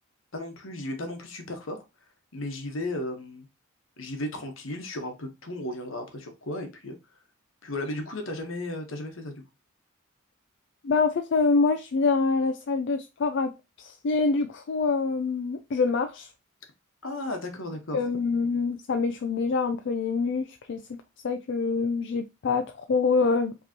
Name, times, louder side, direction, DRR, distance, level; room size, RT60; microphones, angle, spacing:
voice 1, 0.3-1.8 2.3-3.5 4.0-6.9 7.6-9.4 17.0-18.0, left 1 dB, 75° left, 1.1 m, -35 dB
voice 2, 10.8-13.5 13.8-16.3 17.9-21.0 21.2-23.5, left 4 dB, 60° left, 0.4 m, -25 dB
5.0 x 3.1 x 2.8 m
head